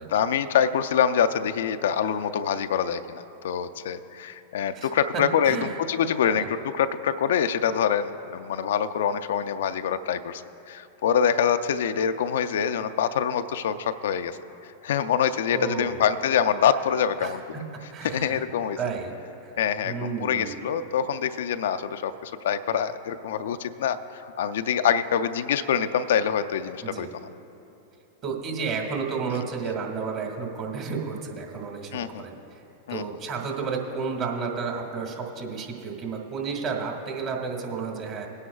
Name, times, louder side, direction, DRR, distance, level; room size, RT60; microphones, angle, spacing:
voice 1, 0.1-10.4 10.7-14.4 14.8-17.4 18.0-18.8 19.6-27.1 31.9-32.3 32.9-33.0, left 8 dB, 70° left, 10 dB, 0.4 m, -25 dB
voice 2, 4.7-5.8 6.2-6.5 15.5-16.1 17.2-17.3 17.9-18.5 18.8-19.2 19.4-19.5 19.8-20.6 26.8-27.1 28.2-32.6 32.9-38.3, right 5 dB, 45° right, 1 dB, 1.9 m, -32 dB
19.0 x 9.8 x 2.3 m, 2.9 s
hypercardioid pair, 105°, 0 cm